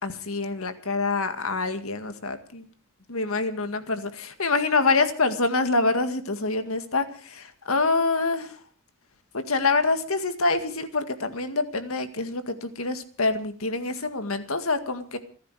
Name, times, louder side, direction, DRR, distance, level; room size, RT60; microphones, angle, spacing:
voice 1, 0.0-2.7 3.1-8.6 9.3-15.2, left 3 dB, 75° left, 9 dB, 1.9 m, -26 dB
28.0 x 10.0 x 4.9 m, 0.41 s
head